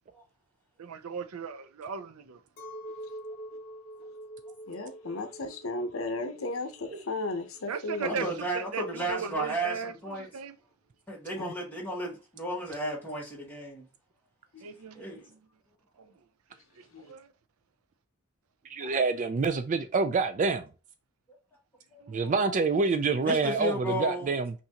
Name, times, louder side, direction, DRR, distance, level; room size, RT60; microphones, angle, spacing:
voice 1, 0.8-2.4 7.7-8.2 8.5-9.9 10.2-10.6 14.6-15.0 16.8-17.3 22.0-22.5, right 6 dB, 90° right, 0.5 m, -37 dB
Chink clink, 2.6-8.0, right 1 dB, 45° left, 1.2 m, -45 dB
voice 2, 4.7-8.2 11.4-11.5 14.5-14.7 15.1-15.2 16.9-17.1, left 2 dB, 70° left, 0.8 m, -35 dB
voice 3, 8.0-10.3 11.1-13.9 14.9-15.2 18.8-18.9 21.9-22.2 23.2-24.3, right 1 dB, 10° left, 1.6 m, -34 dB
voice 4, 18.7-20.7 22.1-24.5, right 4 dB, 35° right, 0.3 m, -27 dB
5.6 x 2.6 x 2.8 m
head